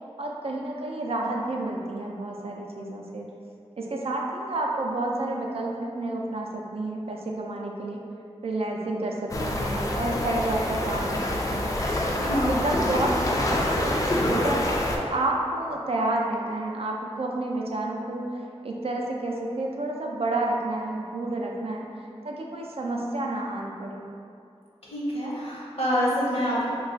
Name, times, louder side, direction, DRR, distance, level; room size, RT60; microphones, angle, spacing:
voice 1, 0.2-3.3 3.8-8.0 8.4-11.8 12.1-18.4 18.6-21.9 22.2-24.1, right 2 dB, 60° right, -1 dB, 0.4 m, -30 dB
sound 1, 9.3-15.0, left 1 dB, 30° left, 0.3 m, -26 dB
voice 2, 12.2-12.8 24.8-26.7, equal, 65° left, -7 dB, 0.8 m, -27 dB
2.4 x 2.3 x 3.8 m, 2.4 s
wide cardioid pair, 60°, 11 cm